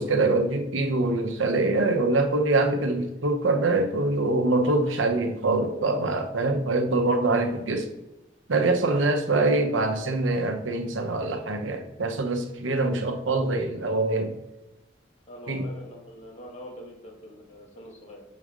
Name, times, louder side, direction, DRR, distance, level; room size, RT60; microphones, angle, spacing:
voice 1, 0.0-7.9 8.5-14.3 15.5-15.7, right 2 dB, 85° right, 0.8 m, -24 dB
voice 2, 15.3-18.2, equal, 35° left, 1.6 m, -44 dB
6.4 x 4.1 x 5.0 m
head